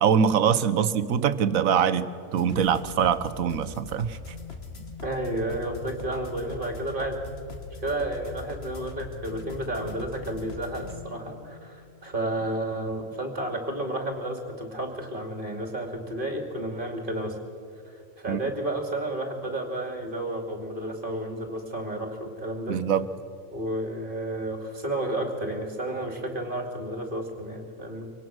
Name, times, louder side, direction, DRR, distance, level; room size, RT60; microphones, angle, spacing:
voice 1, 0.0-4.2 18.3-18.4 22.7-23.1, right 7 dB, 80° right, 13 dB, 1.3 m, -23 dB
sound 1, 2.3-12.2, left 4 dB, 50° left, 1.8 m, -41 dB
voice 2, 5.0-7.2 7.8-17.4 17.9-22.8 23.5-28.1, right 1 dB, 40° right, 4 dB, 2.7 m, -31 dB
24.0 x 18.0 x 6.3 m, 2.5 s
omnidirectional pair, 1.4 m